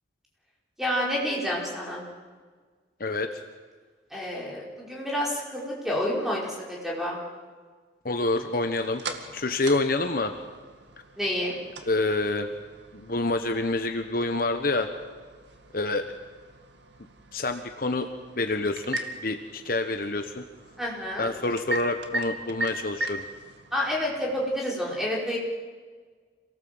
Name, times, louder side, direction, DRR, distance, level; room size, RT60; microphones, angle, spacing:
voice 1, 0.8-2.1 4.1-7.2 11.2-11.6 20.8-21.3 23.7-25.4, left 1 dB, ahead, -3 dB, 5.3 m, -29 dB
voice 2, 3.0-3.3 8.0-9.0 9.3-10.3 11.9-12.5 12.9-14.9 15.7-16.0 17.3-18.1 18.4-20.4 21.2-23.2, left 2 dB, 50° left, 7 dB, 1.2 m, -27 dB
sound 1, 8.2-24.6, right 1 dB, 75° right, 2.2 m, -40 dB
27.0 x 19.0 x 8.0 m, 1.5 s
head